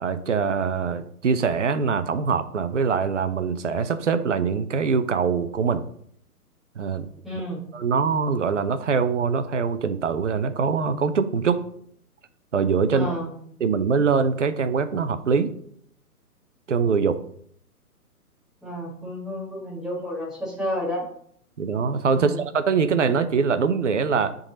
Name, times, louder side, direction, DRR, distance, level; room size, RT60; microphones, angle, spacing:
voice 1, 0.0-5.9 6.8-7.1 7.7-11.6 12.5-13.2 13.6-15.5 16.7-17.2 21.6-24.4, right 5 dB, 50° right, 12 dB, 0.7 m, -23 dB
voice 2, 7.2-7.6 12.9-13.3 18.6-21.0 22.1-22.4, equal, ahead, -6 dB, 1.6 m, -31 dB
9.8 x 3.9 x 4.1 m, 0.64 s
figure-of-eight pair, 130°, 46 cm